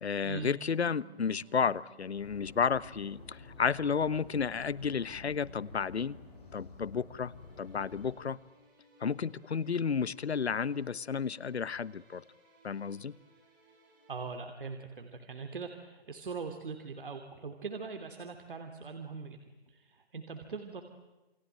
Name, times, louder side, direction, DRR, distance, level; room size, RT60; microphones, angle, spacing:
voice 1, 0.0-6.2 6.5-8.4 9.0-12.2 12.6-13.1, left 6 dB, 85° left, 19 dB, 1.2 m, -32 dB
sound 1, 0.6-14.3, right 4 dB, 20° right, 7.7 m, -61 dB
sound 2, 2.1-8.1, left 4 dB, 40° left, 7.6 m, -51 dB
voice 2, 14.1-20.8, right 5 dB, 55° right, 6 dB, 2.8 m, -41 dB
28.5 x 22.5 x 9.1 m, 1.1 s
hypercardioid pair, 175°, 32 cm